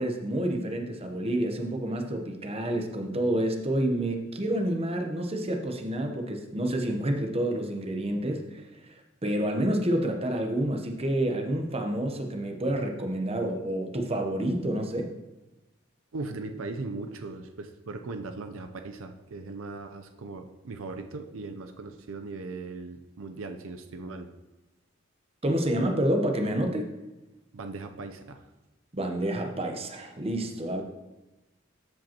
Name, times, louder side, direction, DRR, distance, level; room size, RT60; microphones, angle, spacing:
voice 1, 0.0-15.1 25.4-26.9 28.9-30.8, right 1 dB, 30° right, 4 dB, 0.9 m, -29 dB
voice 2, 16.1-24.3 27.5-28.5, right 3 dB, 80° right, 6 dB, 0.6 m, -38 dB
13.0 x 5.2 x 2.9 m, 1.0 s
head